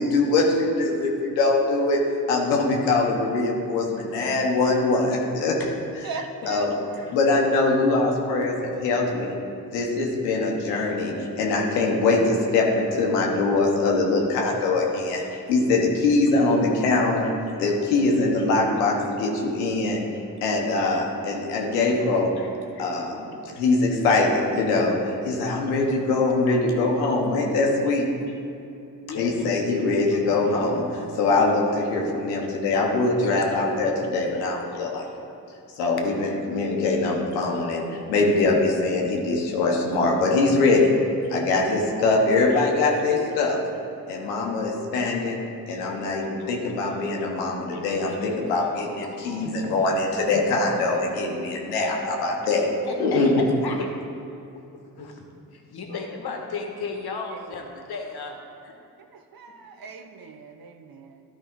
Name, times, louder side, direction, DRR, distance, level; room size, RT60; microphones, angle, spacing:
voice 1, 0.0-6.1 6.4-6.8 7.1-9.4 9.7-17.3 17.6-22.4 22.8-28.1 29.1-35.1 35.8-41.0 41.3-43.6 44.1-45.4 45.7-52.7 53.0-53.3, left 3 dB, 90° left, 0 dB, 1.0 m, -23 dB
voice 2, 6.0-7.2 57.3-57.4 57.8-57.9 59.1-61.2, right 4 dB, 50° right, 6 dB, 0.9 m, -39 dB
voice 3, 29.0-29.3 29.8-30.2 33.2-33.6 45.8-45.9 46.4-46.7 47.7-47.8 49.0-49.2 49.7-49.8 52.2-52.3 52.8-54.0 54.9-55.2 55.5-58.7, left 4 dB, 55° left, 2 dB, 1.4 m, -34 dB
12.0 x 5.1 x 3.7 m, 2.7 s
hypercardioid pair, 40°, 46 cm